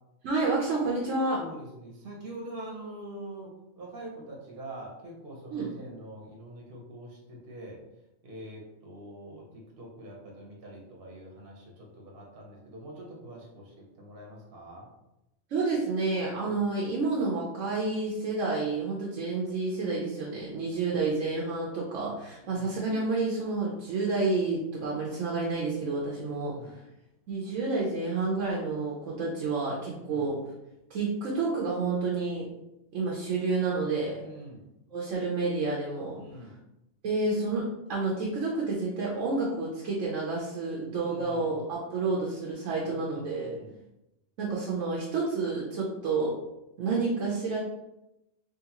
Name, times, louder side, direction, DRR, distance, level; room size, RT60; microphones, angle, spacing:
voice 1, 0.2-1.4 5.5-5.7 15.5-26.5 27.3-30.4 30.9-32.5 32.9-34.2 34.9-36.2 37.0-43.6 44.4-46.4 46.8-47.6, right 3 dB, 70° right, -4 dB, 1.1 m, -29 dB
voice 2, 1.4-7.8 8.2-14.9 20.7-21.1 22.4-22.7 26.2-26.8 30.0-30.4 34.2-34.7 36.1-36.5 40.9-41.5 42.8-43.8, right 1 dB, 45° right, -3 dB, 1.1 m, -45 dB
3.6 x 3.3 x 2.9 m, 0.90 s
omnidirectional pair, 1.4 m